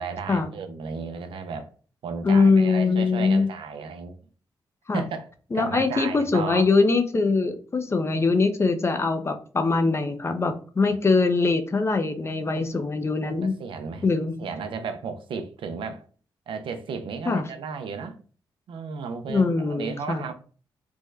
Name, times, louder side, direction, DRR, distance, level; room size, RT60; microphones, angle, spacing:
voice 1, 0.0-1.7 2.0-4.1 4.9-5.3 5.5-6.6 12.5-12.8 13.2-14.1 14.4-16.0 16.5-18.2 18.7-20.3, right 5 dB, 80° right, 0.5 m, -34 dB
voice 2, 2.2-3.5 4.9-5.0 5.5-13.5 14.0-14.3 17.3-17.4 19.3-20.2, left 4 dB, 30° left, 0.5 m, -22 dB
3.4 x 2.1 x 3.2 m
cardioid pair, 80°, 9 cm